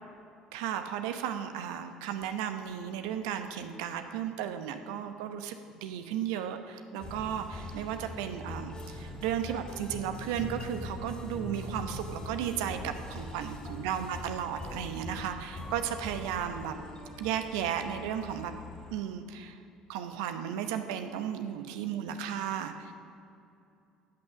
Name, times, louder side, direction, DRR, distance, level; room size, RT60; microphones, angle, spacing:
voice 1, 0.5-5.6 5.8-16.8 17.2-18.5 18.9-19.6 19.9-22.9, right 9 dB, 70° right, 8 dB, 0.8 m, -34 dB
sound 1, 7.0-19.0, left 2 dB, 25° left, 2.2 m, -42 dB
12.5 x 8.6 x 6.2 m, 2.6 s
figure-of-eight pair, 55°, 3 cm